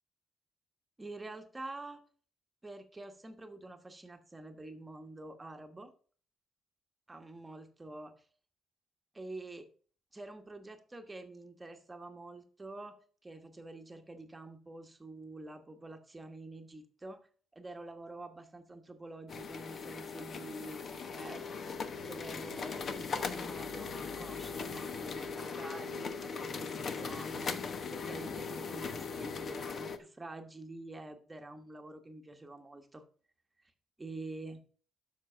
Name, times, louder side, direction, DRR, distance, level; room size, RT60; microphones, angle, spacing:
voice 1, 1.0-2.0 2.6-5.9 7.1-8.1 9.1-9.7 10.1-17.3 17.5-21.4 22.0-33.0 34.0-34.6, right 2 dB, 20° right, 6 dB, 1.2 m, -47 dB
sound 1, 19.3-30.0, left 5 dB, 50° left, 1.0 m, -39 dB
7.4 x 6.1 x 5.5 m, 0.43 s
cardioid pair, 90°, 0 cm